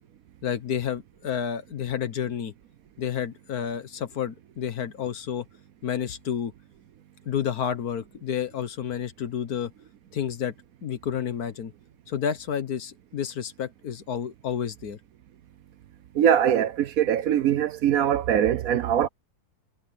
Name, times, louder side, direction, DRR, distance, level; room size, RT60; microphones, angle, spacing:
voice 1, 0.4-2.5 3.0-5.5 5.8-6.5 7.2-9.7 10.1-10.5 10.8-11.7 12.1-15.0, left 8 dB, 65° left, 1.7 m, -30 dB
voice 2, 16.1-19.1, right 9 dB, 65° right, 1.1 m, -22 dB
omnidirectional pair, 1.7 m